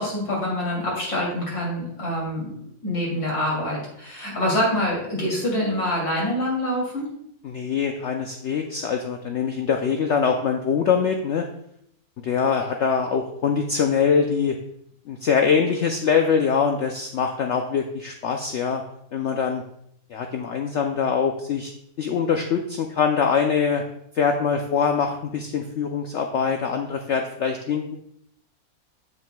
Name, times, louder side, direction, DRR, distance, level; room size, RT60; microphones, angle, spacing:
voice 1, 0.0-7.1, left 1 dB, 80° left, -3 dB, 3.1 m, -26 dB
voice 2, 7.4-11.4 12.2-14.6 15.1-18.8 19.1-19.6 20.1-21.7 22.0-23.8 24.1-28.0, left 6 dB, 65° left, 4 dB, 0.7 m, -23 dB
7.9 x 7.5 x 2.2 m, 0.72 s
omnidirectional pair, 1.6 m